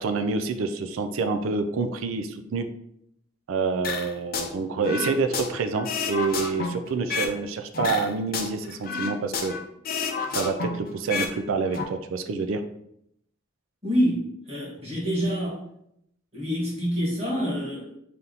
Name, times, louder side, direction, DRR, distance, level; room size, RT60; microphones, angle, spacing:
voice 1, 0.0-2.7 3.5-9.5 10.3-12.6, right 4 dB, 80° right, 7 dB, 0.4 m, -27 dB
sound 1, 3.8-4.5 4.8-7.4 7.7-9.6 9.8-11.3 11.6-11.8, left 5 dB, 45° left, 0.5 m, -30 dB
voice 2, 13.8-15.6 16.3-17.9, equal, 30° right, -5 dB, 1.5 m, -26 dB
3.4 x 2.8 x 3.9 m, 0.75 s
head